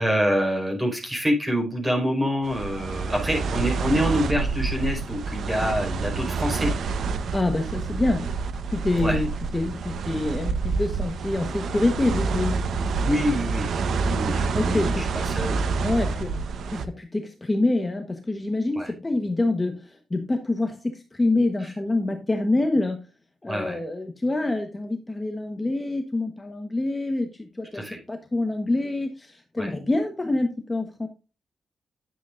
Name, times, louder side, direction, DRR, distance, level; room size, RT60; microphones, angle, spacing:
voice 1, 0.0-6.7 9.0-9.2 13.0-13.7 14.0-16.0 18.7-18.9 21.6-21.7 23.4-23.8 27.7-28.0 29.5-29.7, equal, 15° right, 1 dB, 4.8 m, -26 dB
sound 1, 2.4-16.9, right 4 dB, 85° right, 1.0 m, -27 dB
voice 2, 7.3-8.3 8.7-12.6 14.5-15.0 15.8-16.4 16.7-23.0 23.4-31.1, left 2 dB, 20° left, 4 dB, 1.2 m, -26 dB
11.0 x 8.0 x 2.6 m, 0.32 s
wide cardioid pair, 135°, 0 cm